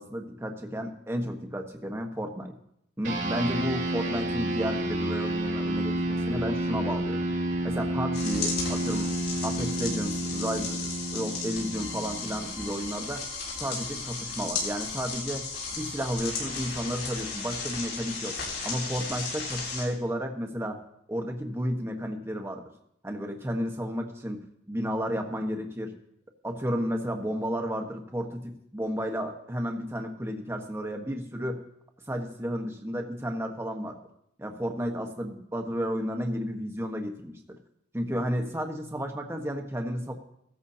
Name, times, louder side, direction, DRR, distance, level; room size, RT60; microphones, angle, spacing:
voice 1, 0.0-2.5 3.0-7.3 7.6-9.1 9.4-13.2 13.6-15.5 15.7-18.4 18.6-20.8 21.1-22.7 23.0-24.4 24.7-25.9 26.4-31.6 32.1-34.0 34.4-37.6 37.9-40.1, equal, 15° right, 3 dB, 1.2 m, -32 dB
sound 1, 3.0-12.8, right 1 dB, 80° right, 2.7 m, -30 dB
sound 2, 8.1-19.8, left 4 dB, 65° left, 6.1 m, -35 dB
17.0 x 14.0 x 2.8 m, 0.75 s
head